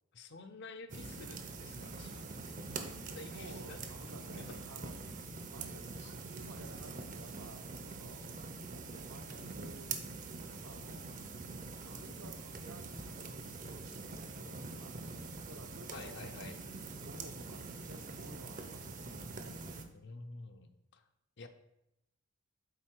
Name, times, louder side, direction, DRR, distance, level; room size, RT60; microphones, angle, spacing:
voice 1, 0.1-2.6 3.0-3.8 4.4-4.6 6.0-6.1 15.9-16.6 19.9-21.0 21.4-21.5, left 3 dB, 50° left, 8 dB, 0.6 m, -50 dB
sound 1, 0.9-19.8, right 3 dB, 35° right, 0.6 m, -44 dB
voice 2, 3.3-5.0 5.5-8.3 8.7-10.0 10.3-11.1 11.8-16.4 17.0-19.1, right 2 dB, 80° right, 5 dB, 0.9 m, -54 dB
7.8 x 4.2 x 4.5 m, 0.83 s
head